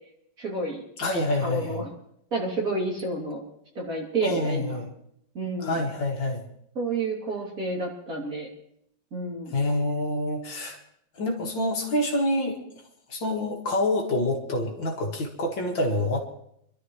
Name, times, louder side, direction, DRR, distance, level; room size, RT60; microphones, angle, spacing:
voice 1, 0.4-0.8 1.4-1.9 2.3-3.4 3.8-4.8 5.3-5.9 6.8-8.5 9.1-9.6, right 2 dB, 45° right, -3 dB, 3.5 m, -30 dB
voice 2, 1.0-1.8 4.2-4.9 5.6-6.4 9.5-10.8 11.2-12.6 13.1-16.2, left 1 dB, 70° left, 1 dB, 2.7 m, -27 dB
27.0 x 12.5 x 3.2 m, 0.73 s
omnidirectional pair, 2.1 m